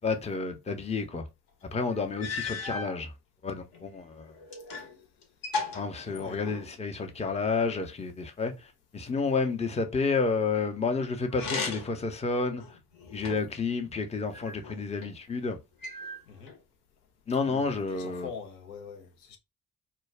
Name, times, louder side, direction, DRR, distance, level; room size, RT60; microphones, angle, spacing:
voice 1, 0.0-1.2 1.7-3.1 3.4-4.3 5.7-12.8 13.1-15.6 17.3-18.3, left 4 dB, 15° left, 0.6 m, -30 dB
sound 1, 1.6-1.7 2.2-3.0 3.7-4.9 5.2-6.7 11.3-12.1 12.6-13.6 14.3-15.1 15.8-16.6, left 4 dB, 50° left, 0.9 m, -36 dB
voice 2, 6.0-6.4 9.7-9.8 16.3-16.5 17.4-19.4, left 6 dB, 85° left, 0.6 m, -43 dB
2.2 x 2.2 x 3.3 m
figure-of-eight pair, 40°, 45 cm